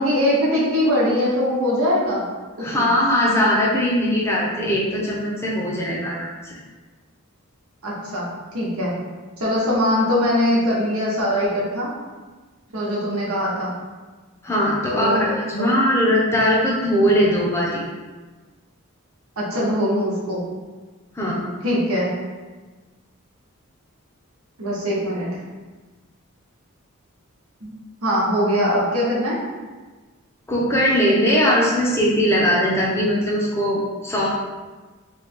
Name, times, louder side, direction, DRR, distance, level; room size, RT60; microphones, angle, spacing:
voice 1, 0.0-2.2 2.6-2.9 7.8-8.2 8.5-8.9 9.4-11.9 12.7-13.7 14.9-15.3 15.6-15.7 19.4-20.4 21.6-22.1 24.6-25.3 27.6-27.7 28.0-29.4, equal, 80° right, -5 dB, 1.1 m, -21 dB
voice 2, 2.6-6.6 14.4-17.8 21.2-21.4 30.5-34.3, equal, 10° left, -4 dB, 0.6 m, -20 dB
3.2 x 2.3 x 4.2 m, 1.3 s
head